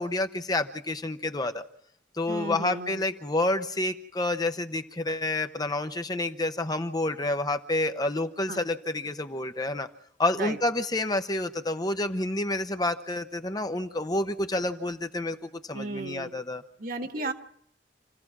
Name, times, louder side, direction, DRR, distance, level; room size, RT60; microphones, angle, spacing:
voice 1, 0.0-1.6 2.1-9.9 10.2-16.6 17.1-17.3, left 2 dB, 20° left, 8 dB, 0.9 m, -29 dB
voice 2, 2.3-3.0 8.5-8.6 10.4-10.6 15.7-16.3 16.8-17.3, right 2 dB, 50° right, 7 dB, 2.0 m, -34 dB
28.5 x 15.5 x 6.1 m, 0.69 s
head